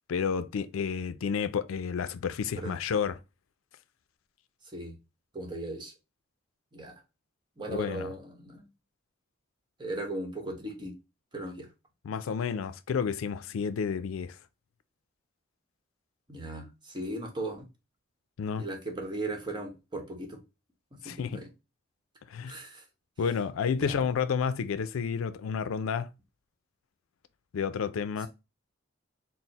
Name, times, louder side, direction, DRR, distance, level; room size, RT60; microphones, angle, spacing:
voice 1, 0.1-3.2 7.7-8.1 12.0-14.4 18.4-18.7 21.0-21.4 22.3-22.6 23.2-26.1 27.5-28.3, left 6 dB, 90° left, 0.4 m, -30 dB
voice 2, 5.3-5.9 6.7-6.9 7.6-8.7 9.8-10.9 11.3-11.7 16.3-17.7 18.6-20.4 21.0-21.5 22.5-22.8 23.8-24.0, right 2 dB, 25° right, 0.9 m, -37 dB
4.4 x 2.0 x 3.9 m
head